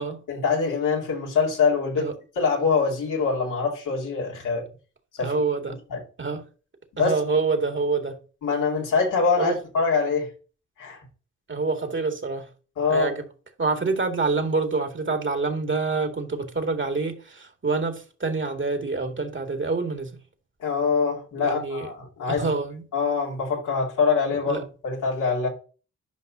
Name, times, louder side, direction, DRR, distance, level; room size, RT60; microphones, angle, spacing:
voice 1, 0.3-2.1 2.4-4.7 5.2-5.3 5.9-6.0 6.9-7.1 8.4-10.3 10.8-11.0 12.8-13.1 20.6-22.5 22.9-25.5, left 5 dB, 75° left, 3.0 m, -24 dB
voice 2, 5.2-5.8 6.2-6.4 7.0-8.2 9.4-9.6 11.5-12.5 12.9-13.2 13.6-20.1 21.4-21.9 22.3-22.8 24.5-24.6, right 4 dB, 40° right, 2.3 m, -26 dB
11.5 x 5.5 x 2.7 m
hypercardioid pair, 40°, 31 cm